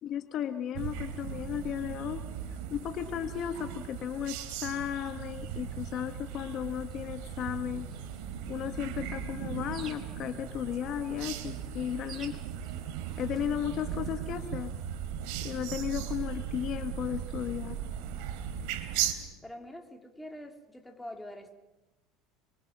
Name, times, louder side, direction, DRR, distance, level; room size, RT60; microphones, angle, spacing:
voice 1, 0.0-2.2 2.7-7.9 8.5-12.4 13.2-14.7 15.4-17.8, left 10 dB, 45° left, 7 dB, 1.6 m, -35 dB
sound 1, 0.7-19.1, right 9 dB, 70° right, 3.4 m, -38 dB
sound 2, 2.5-14.9, right 6 dB, 40° right, 4.9 m, -55 dB
voice 2, 19.4-21.6, left 1 dB, 5° left, 3 dB, 3.5 m, -45 dB
29.0 x 24.5 x 6.2 m, 1.1 s
supercardioid pair, 115°, 0 cm